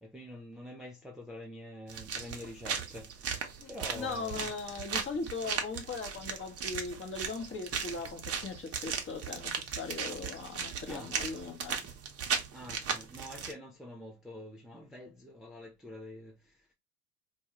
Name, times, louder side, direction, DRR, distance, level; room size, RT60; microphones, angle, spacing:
voice 1, 0.0-3.4 3.7-4.5 10.9-11.2 12.5-16.7, left 1 dB, ahead, 0.3 m, -46 dB
sound 1, 1.9-13.5, right 6 dB, 35° right, 0.6 m, -37 dB
voice 2, 3.6-11.9, left 4 dB, 30° left, 0.8 m, -39 dB
2.3 x 2.2 x 2.8 m
hypercardioid pair, 70°, 44 cm